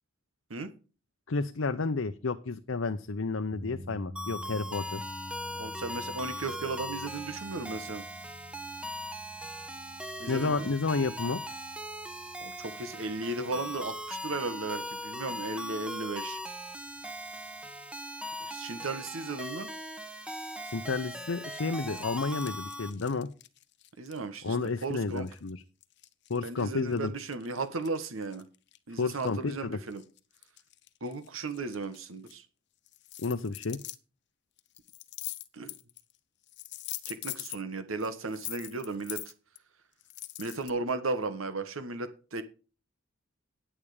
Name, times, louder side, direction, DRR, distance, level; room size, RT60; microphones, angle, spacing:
voice 1, 1.3-5.0 10.3-11.4 20.6-23.3 24.4-25.6 26.3-27.1 29.0-29.8 33.2-33.8, left 4 dB, 80° left, 8 dB, 0.7 m, -31 dB
sound 1, 3.5-17.8, equal, 45° right, 5.4 m, -50 dB
sound 2, 4.2-22.9, equal, 5° right, 1.1 m, -39 dB
voice 2, 5.5-8.0 10.2-10.7 12.4-16.4 18.4-19.7 24.0-24.6 24.8-25.3 26.4-28.4 28.9-30.0 31.0-32.5 35.5-35.7 37.1-39.3 40.4-42.4, right 3 dB, 90° right, 10 dB, 1.2 m, -35 dB
sound 3, 21.8-25.5 25.8-29.6 29.9-32.3 32.9-34.0 34.6-36.2 36.4-37.6 38.0-39.6 40.0-40.7, left 16 dB, 60° left, 0.9 m, -43 dB
10.0 x 8.9 x 4.9 m, 0.35 s
head